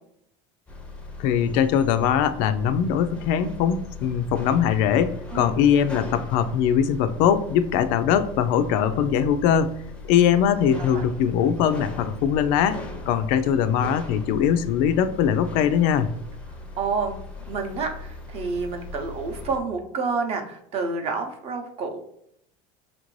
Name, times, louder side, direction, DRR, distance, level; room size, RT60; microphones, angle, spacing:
sound 1, 0.7-19.6, left 3 dB, 5° left, 0.5 m, -39 dB
voice 1, 1.2-9.7 10.1-16.1, left 8 dB, 65° left, 10 dB, 0.4 m, -21 dB
voice 2, 16.8-17.2 17.5-22.0, right 4 dB, 40° right, 4 dB, 0.6 m, -29 dB
5.8 x 2.6 x 3.1 m, 0.73 s
cardioid pair, 155°, 16 cm